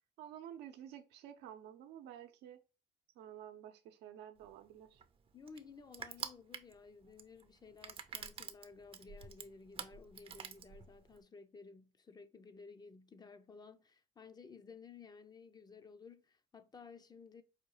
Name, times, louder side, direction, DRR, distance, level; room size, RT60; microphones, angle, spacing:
voice 1, 0.2-2.6 3.2-5.0, right 10 dB, 85° right, 0.7 m, -51 dB
Crushing, 4.4-11.2, right 6 dB, 35° right, 0.5 m, -48 dB
voice 2, 5.3-17.4, left 5 dB, 25° left, 0.5 m, -55 dB
4.9 x 2.3 x 3.0 m
cardioid pair, 110°, 17 cm